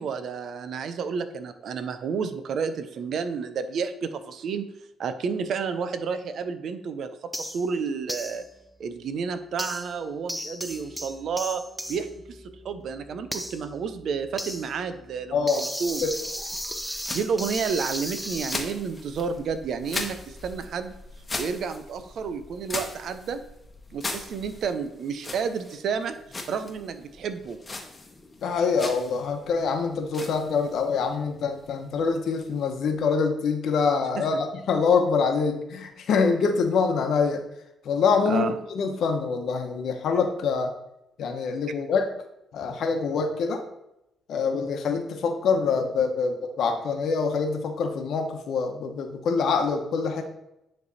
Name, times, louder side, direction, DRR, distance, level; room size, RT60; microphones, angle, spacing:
voice 1, 0.0-4.7 5.0-8.4 8.8-11.6 11.9-16.1 17.1-20.9 21.4-23.4 23.9-26.2 26.5-27.6 34.2-34.3 38.2-38.6, right 6 dB, 65° right, 10 dB, 0.6 m, -31 dB
sound 1, 7.3-7.7 8.1-8.4 9.6-10.0 10.3-18.6, equal, ahead, 0.6 m, -36 dB
voice 2, 15.3-15.6 16.0-16.1 28.4-37.4 37.8-40.7 41.2-42.1 42.5-43.6 44.3-50.2, left 5 dB, 70° left, 5 dB, 1.0 m, -25 dB
sound 2, 15.9-33.2, left 2 dB, 25° left, 1.0 m, -40 dB
9.6 x 3.3 x 4.1 m, 0.86 s
cardioid pair, 90°, 0 cm